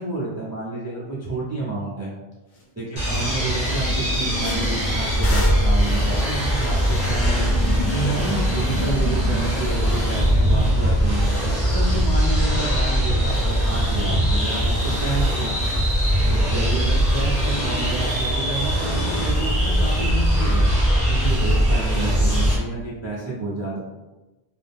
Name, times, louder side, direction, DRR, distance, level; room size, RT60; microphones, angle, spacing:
voice 1, 0.0-2.1 2.8-7.5 7.9-11.3 11.7-15.5 16.3-20.7 21.1-23.8, right 2 dB, 20° right, -6 dB, 0.4 m, -29 dB
sound 1, 2.6-2.7 3.0-3.2 3.6-8.3, left 2 dB, 50° left, 0.4 m, -37 dB
sound 2, 3.0-22.5, equal, 15° left, 0.8 m, -21 dB
2.4 x 2.1 x 3.5 m, 1.1 s
omnidirectional pair, 1.1 m